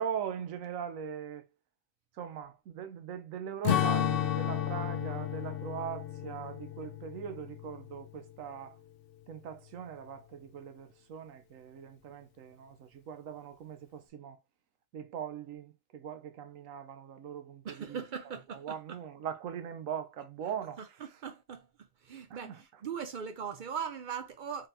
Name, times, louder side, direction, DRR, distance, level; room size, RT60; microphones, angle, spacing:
voice 1, 0.0-1.5 2.2-8.8 9.3-14.4 14.9-18.0 18.5-20.8 22.4-22.6, right 8 dB, 85° right, 1.1 m, -40 dB
Strum, 3.6-8.3, left 9 dB, 65° left, 0.6 m, -32 dB
voice 2, 17.6-19.0 20.8-24.7, right 7 dB, 70° right, 0.4 m, -40 dB
3.9 x 3.4 x 2.6 m
omnidirectional pair, 1.4 m